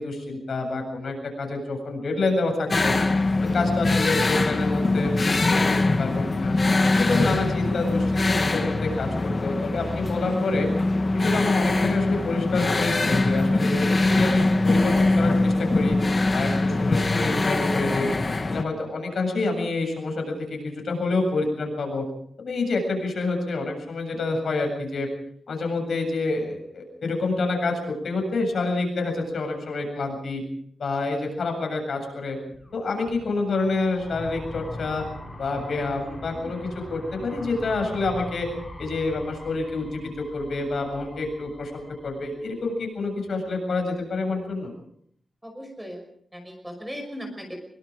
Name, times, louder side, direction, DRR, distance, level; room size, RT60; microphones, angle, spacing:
voice 1, 0.0-3.0 3.4-6.6 6.9-10.7 11.1-16.0 16.3-18.1 18.4-22.0 22.4-25.1 25.5-30.4 30.8-32.4 32.7-35.0 35.4-38.5 38.8-44.7, left 3 dB, 60° left, 3 dB, 7.7 m, -28 dB
sound 1, 2.7-18.6, left 2 dB, 30° left, 1.6 m, -22 dB
sound 2, 32.3-43.2, left 1 dB, 10° left, 7.4 m, -41 dB
voice 2, 45.4-46.0 46.3-47.6, equal, 5° right, 4 dB, 5.7 m, -38 dB
24.5 x 24.0 x 5.0 m, 0.65 s
wide cardioid pair, 165°, 0 cm